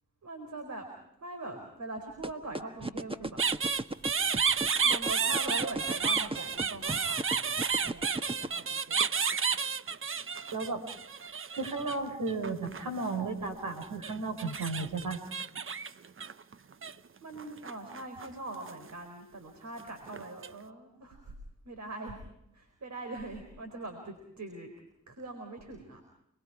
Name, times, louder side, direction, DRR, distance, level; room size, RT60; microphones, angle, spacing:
voice 1, 0.2-0.9 1.2-3.4 4.8-8.0 8.4-9.0 17.2-21.3 21.6-22.2 22.5-24.7 25.1-26.0, right 2 dB, 55° right, 5 dB, 4.3 m, -42 dB
sound 1, 2.2-8.5, right 1 dB, 15° right, 1.5 m, -34 dB
sound 2, 3.4-12.0 12.3-13.2 13.8-16.9 17.4-18.3 18.5-18.9 19.8-20.5, right 6 dB, 40° right, 0.9 m, -31 dB
voice 2, 10.5-10.8 11.5-15.2, right 3 dB, 75° right, 6 dB, 5.2 m, -34 dB
29.5 x 21.5 x 4.9 m, 0.80 s
cardioid pair, 55°, 33 cm